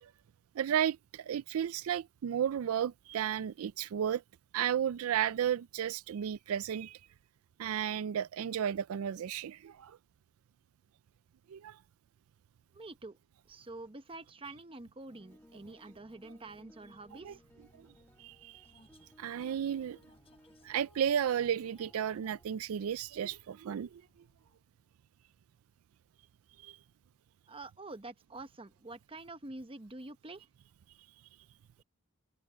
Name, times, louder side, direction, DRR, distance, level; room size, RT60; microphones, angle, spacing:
voice 1, 0.6-4.2 4.5-7.0 7.6-10.0 11.5-11.8 17.2-17.3 17.8-17.9 18.2-18.7 19.2-20.0 20.6-24.0 26.6-26.8, right 9 dB, 75° right, 0.3 m, -33 dB
voice 2, 12.7-13.2 13.5-17.4 27.5-30.5, right 2 dB, 25° right, 0.9 m, -47 dB
Vehicle, 13.0-24.9, left 2 dB, 25° left, 4.3 m, -68 dB
sound 1, 15.1-22.5, equal, 10° left, 1.0 m, -62 dB
open air
head